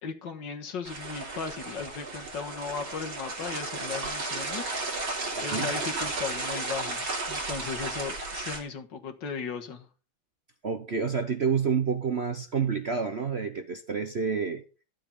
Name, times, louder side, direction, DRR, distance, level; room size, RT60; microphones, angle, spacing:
voice 1, 0.0-4.7 5.4-9.9, left 5 dB, 65° left, 2.1 m, -36 dB
sound 1, 0.8-8.6, right 2 dB, 80° right, 4.0 m, -34 dB
voice 2, 5.4-5.7 10.6-14.6, right 6 dB, 45° right, 0.9 m, -29 dB
12.5 x 7.4 x 5.4 m
omnidirectional pair, 2.1 m